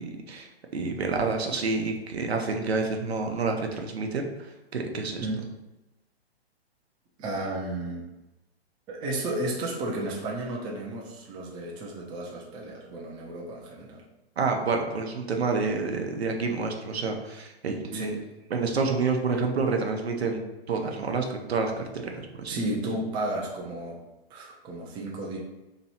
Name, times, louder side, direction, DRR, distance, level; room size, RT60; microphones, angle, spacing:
voice 1, 0.0-4.3 4.7-5.3 14.4-18.2 18.5-20.4 20.7-22.5, right 4 dB, 80° right, 3 dB, 0.8 m, -28 dB
voice 2, 7.2-8.1 8.9-14.0 17.9-18.1 22.5-24.0 24.3-25.4, right 1 dB, 15° right, -2 dB, 0.5 m, -33 dB
3.0 x 2.9 x 4.1 m, 1.0 s
hypercardioid pair, 125°, 32 cm